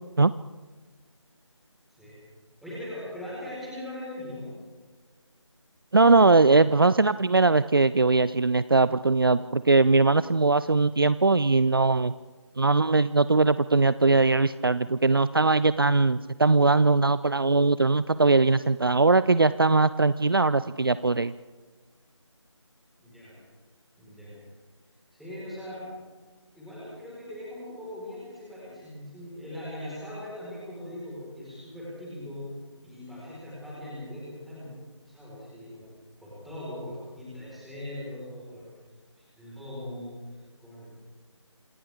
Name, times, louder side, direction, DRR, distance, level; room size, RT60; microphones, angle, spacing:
voice 1, 2.6-4.5 23.0-23.3 24.0-24.3 25.1-25.9 26.5-32.5 32.8-34.7 35.0-35.8 36.2-38.7 39.2-40.1 40.6-40.9, left 1 dB, ahead, -9 dB, 4.5 m, -40 dB
voice 2, 5.9-12.1 12.6-21.3, right 3 dB, 45° right, 16 dB, 0.5 m, -21 dB
27.0 x 27.0 x 3.6 m, 1.4 s
figure-of-eight pair, 165°, 16 cm